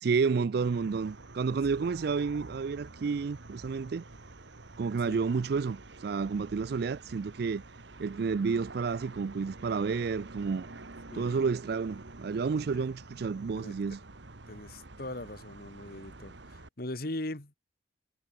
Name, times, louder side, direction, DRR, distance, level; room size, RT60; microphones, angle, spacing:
voice 1, 0.0-4.0 4.8-7.6 8.0-10.7 11.1-14.0, right 5 dB, 60° right, 0.4 m, -30 dB
sound 1, 0.6-16.7, right 2 dB, 75° right, 1.7 m, -48 dB
voice 2, 11.1-11.4 12.7-12.9 13.6-13.8 14.5-17.5, left 1 dB, 55° left, 2.3 m, -40 dB
head